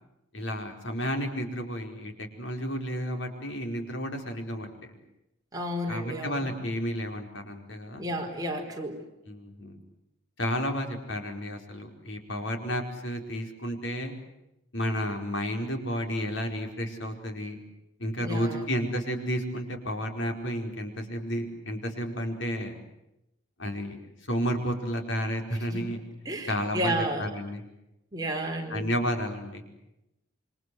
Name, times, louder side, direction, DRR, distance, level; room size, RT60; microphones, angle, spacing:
voice 1, 0.3-4.9 5.9-8.0 9.3-9.8 10.4-14.1 14.7-17.6 18.0-22.7 23.6-24.0 24.3-26.0 26.4-27.6 28.7-29.6, equal, 75° left, 4 dB, 4.9 m, -32 dB
voice 2, 5.5-6.5 8.0-9.0 18.2-18.7 25.7-25.8 26.2-27.3 28.1-28.9, right 1 dB, 20° right, 1 dB, 4.7 m, -32 dB
27.5 x 25.0 x 8.0 m, 0.89 s
head